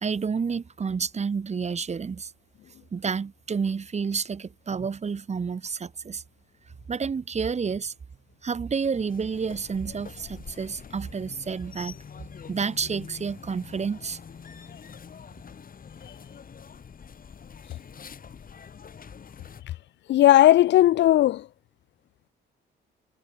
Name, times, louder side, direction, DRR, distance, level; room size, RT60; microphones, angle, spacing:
voice 1, 0.0-2.3 2.9-6.2 6.9-7.9 8.4-11.9 12.5-14.2, right 5 dB, 35° right, 1.6 m, -29 dB
sound 1, 8.8-19.6, left 6 dB, 45° left, 4.9 m, -45 dB
voice 2, 20.1-21.5, left 13 dB, 65° left, 0.4 m, -17 dB
cardioid pair, 90°, 20 cm